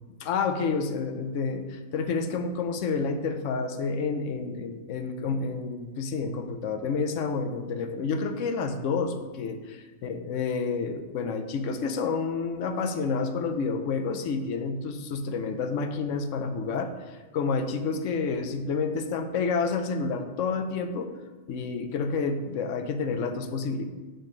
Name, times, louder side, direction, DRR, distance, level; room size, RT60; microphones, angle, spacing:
voice 1, 0.2-9.6 10.0-21.1 21.5-23.8, left 4 dB, 80° left, 7 dB, 1.0 m, -29 dB
6.6 x 6.4 x 3.9 m, 1.2 s
omnidirectional pair, 1.3 m